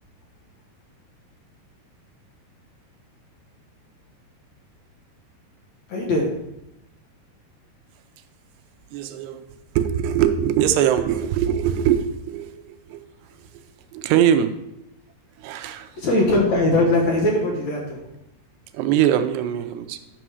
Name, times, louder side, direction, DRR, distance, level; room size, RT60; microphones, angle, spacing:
voice 1, 5.9-6.3 15.9-18.0, left 2 dB, 60° left, 2.1 m, -20 dB
voice 2, 8.9-9.4 9.8-13.0 13.9-14.5 15.4-15.9 18.7-20.0, right 10 dB, 90° right, 2.8 m, -22 dB
11.0 x 6.2 x 4.7 m
omnidirectional pair, 4.8 m